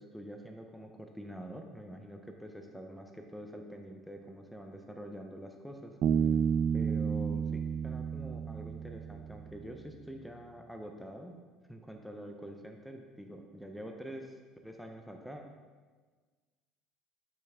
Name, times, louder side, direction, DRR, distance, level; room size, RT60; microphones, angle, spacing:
voice 1, 0.0-5.9 6.7-11.3 11.7-15.4, equal, ahead, 3 dB, 0.6 m, -46 dB
Bass guitar, 6.0-9.5, right 7 dB, 55° right, 0.3 m, -31 dB
6.1 x 5.6 x 3.4 m, 1.4 s
cardioid pair, 110°, 0 cm